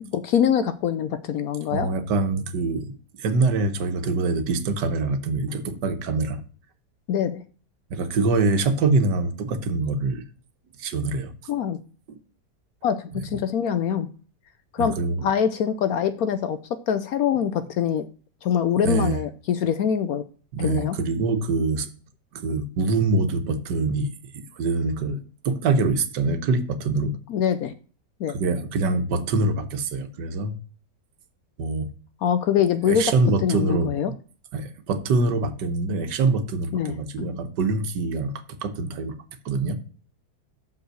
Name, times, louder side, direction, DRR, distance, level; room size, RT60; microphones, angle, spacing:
voice 1, 0.1-1.9 7.1-7.4 11.5-11.8 12.8-14.1 14.7-15.0 15.2-16.6 16.9-18.1 18.4-20.2 20.6-20.9 27.3-27.7 28.2-28.4 32.2-33.1 33.4-34.1 36.7-37.4, left 8 dB, 70° left, 12 dB, 1.0 m, -24 dB
voice 2, 1.7-2.9 3.2-6.4 7.9-10.2 10.8-11.3 12.1-12.2 14.8-15.3 18.8-19.2 20.5-21.9 22.3-24.1 24.3-27.2 28.3-30.5 31.6-31.9 32.9-33.9 34.5-38.3 38.6-39.1 39.4-39.8, right 3 dB, 85° right, 9 dB, 1.6 m, -24 dB
6.6 x 5.3 x 6.3 m, 0.40 s
omnidirectional pair, 1.8 m